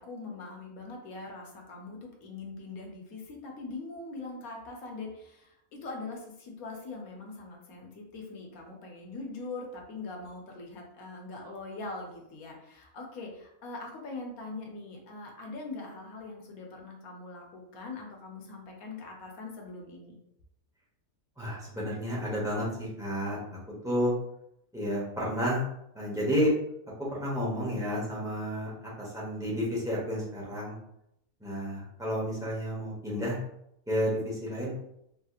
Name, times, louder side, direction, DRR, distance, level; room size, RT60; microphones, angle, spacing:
voice 1, 0.0-20.2, left 3 dB, 75° left, 1 dB, 1.2 m, -42 dB
voice 2, 21.4-23.4 23.8-24.1 24.7-25.6 25.9-26.5 27.1-30.8 31.4-33.4 33.9-34.7, equal, 5° right, -7 dB, 0.7 m, -31 dB
3.3 x 2.8 x 2.4 m, 0.78 s
omnidirectional pair, 1.6 m